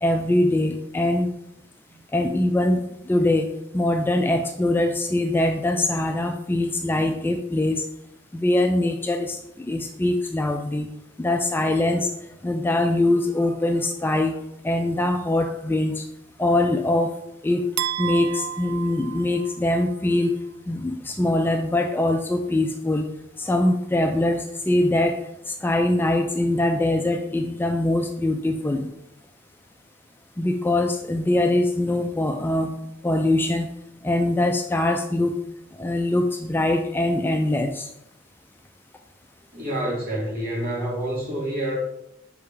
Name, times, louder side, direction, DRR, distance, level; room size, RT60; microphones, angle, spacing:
voice 1, 0.0-1.3 2.1-7.8 8.3-10.9 11.2-12.1 12.4-16.1 16.4-17.1 17.4-17.7 18.0-20.4 20.7-23.1 23.4-28.9 30.4-32.7 33.0-33.7 34.0-35.4 35.8-37.9, left 1 dB, 10° left, 5 dB, 0.3 m, -23 dB
sound 1, 17.8-19.9, right 12 dB, 80° right, 0.3 m, -31 dB
voice 2, 39.5-41.8, right 1 dB, 50° right, -4 dB, 2.1 m, -27 dB
5.5 x 3.4 x 5.1 m, 0.82 s
head